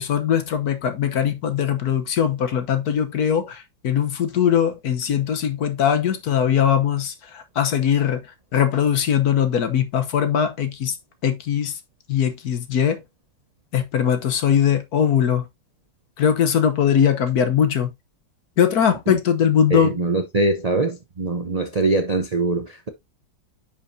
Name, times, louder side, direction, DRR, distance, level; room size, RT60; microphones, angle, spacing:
voice 1, 0.0-8.2 8.5-10.9 11.2-11.7 12.1-13.0 13.7-15.4 16.2-17.9 18.6-20.0, left 8 dB, 60° left, 1.4 m, -20 dB
voice 2, 19.7-22.9, right 3 dB, 70° right, 0.3 m, -23 dB
9.8 x 5.6 x 2.7 m
omnidirectional pair, 2.0 m